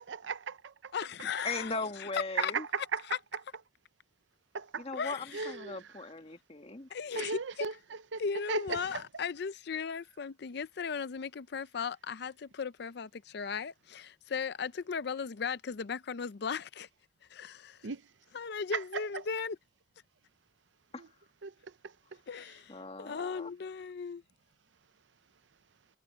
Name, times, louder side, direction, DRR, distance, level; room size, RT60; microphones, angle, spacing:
voice 1, 0.1-0.9 2.4-3.0 4.5-4.9 5.3-5.8 7.2-8.2 8.5-9.0 17.8-18.0 18.9-19.0 21.4-21.5, right 5 dB, 85° right, 0.7 m, -36 dB
voice 2, 0.9-1.7 2.0-2.5 5.0-5.5 6.9-7.7 8.2-16.9 17.3-17.9 18.3-19.6 22.3-24.2, left 6 dB, 60° left, 0.5 m, -37 dB
voice 3, 1.4-2.7 4.8-6.9 20.9-21.0 22.7-23.5, left 3 dB, 35° left, 1.8 m, -39 dB
head